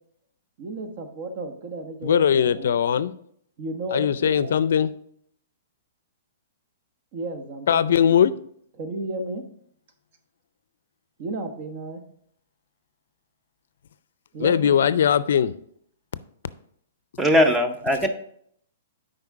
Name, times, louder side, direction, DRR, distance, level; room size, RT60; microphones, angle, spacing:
voice 1, 0.6-2.8 3.6-4.6 7.1-8.3 8.7-9.4 11.2-12.0 14.3-14.9, right 2 dB, 45° right, 1.1 m, -33 dB
voice 2, 2.0-3.1 3.9-4.9 7.7-8.3 14.4-15.5, left 8 dB, 70° left, 0.4 m, -20 dB
voice 3, 17.2-18.1, equal, 10° right, 0.7 m, -19 dB
8.0 x 5.2 x 3.7 m
hypercardioid pair, 150°, 0 cm